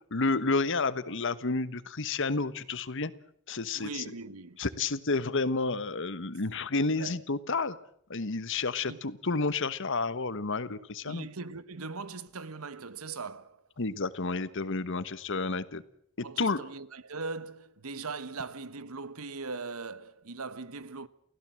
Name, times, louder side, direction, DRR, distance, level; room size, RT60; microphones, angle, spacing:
voice 1, 0.1-3.1 3.5-4.0 4.6-7.8 8.1-11.3 13.8-15.8 16.4-16.6, left 3 dB, 60° left, 1.3 m, -30 dB
voice 2, 3.7-4.6 7.0-7.2 8.9-9.0 11.0-13.6 16.2-21.1, right 4 dB, 85° right, 1.2 m, -40 dB
30.0 x 16.0 x 7.7 m
head